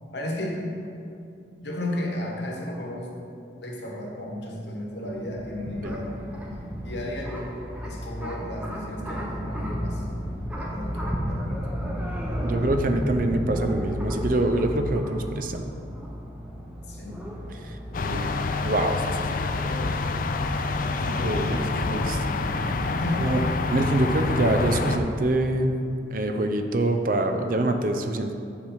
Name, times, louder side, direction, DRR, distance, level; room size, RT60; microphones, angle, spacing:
voice 1, 0.1-0.7 1.6-3.2 3.6-7.5 7.8-10.1 10.6-12.1 16.9-17.3 17.9-18.3 19.6-20.0 20.8-23.4, left 1 dB, 70° left, 0 dB, 1.2 m, -34 dB
sound 1, 5.0-23.1, equal, 5° right, 0.7 m, -34 dB
voice 2, 12.4-15.6 17.6-17.8 18.0-18.3 18.6-19.0 21.2-22.2 23.2-23.4 23.7-25.7 26.1-28.3, right 1 dB, 45° right, 6 dB, 0.5 m, -25 dB
sound 2, 17.9-25.0, left 3 dB, 50° left, 0.4 m, -27 dB
7.3 x 4.7 x 5.8 m, 2.6 s
head